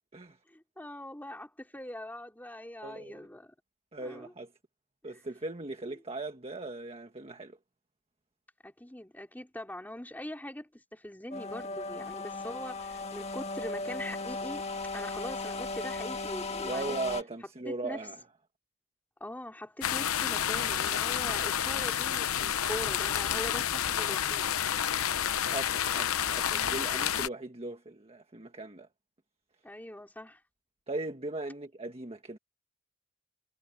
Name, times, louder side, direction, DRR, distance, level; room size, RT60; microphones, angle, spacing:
voice 1, 0.5-3.5 4.0-4.3 5.0-5.2 5.8-5.9 8.6-14.6 14.9-17.0 17.6-18.0 19.2-24.5 29.6-30.4, left 1 dB, 10° left, 3.2 m, -42 dB
voice 2, 2.8-3.3 3.9-4.5 5.0-7.6 16.6-18.2 25.4-28.9 30.9-32.4, right 2 dB, 30° right, 1.5 m, -38 dB
sound 1, 11.3-17.2, left 3 dB, 30° left, 1.8 m, -37 dB
Rain - shower, 19.8-27.3, left 9 dB, 80° left, 0.8 m, -30 dB
head